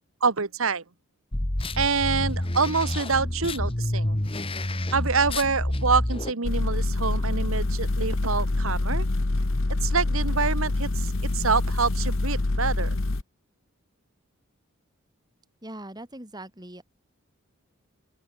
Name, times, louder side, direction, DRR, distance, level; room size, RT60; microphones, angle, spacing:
voice 1, 0.2-0.8 1.8-4.2 4.9-9.1 9.8-12.9, right 5 dB, 70° right, 1.5 m, -26 dB
sound 1, 1.3-6.3, left 1 dB, 25° left, 1.6 m, -28 dB
sound 2, 6.4-13.2, left 2 dB, 65° left, 1.2 m, -26 dB
voice 2, 15.6-16.8, right 1 dB, 20° right, 5.6 m, -41 dB
open air
head